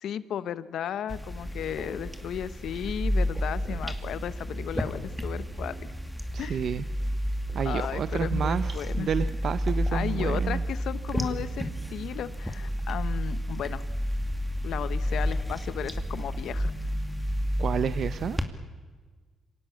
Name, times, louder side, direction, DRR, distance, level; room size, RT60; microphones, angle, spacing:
voice 1, 0.0-5.9 6.4-6.7 7.6-9.1 9.9-13.8 14.6-16.7, left 9 dB, 70° left, 15 dB, 1.1 m, -34 dB
sound 1, 1.1-18.4, equal, 5° right, 2.4 m, -31 dB
sound 2, 1.4-13.0, right 2 dB, 30° right, 3.6 m, -53 dB
voice 2, 6.3-6.8 7.5-10.6 17.6-18.4, right 7 dB, 60° right, 13 dB, 0.7 m, -30 dB
26.0 x 18.0 x 8.6 m, 1.5 s
cardioid pair, 90°, 0 cm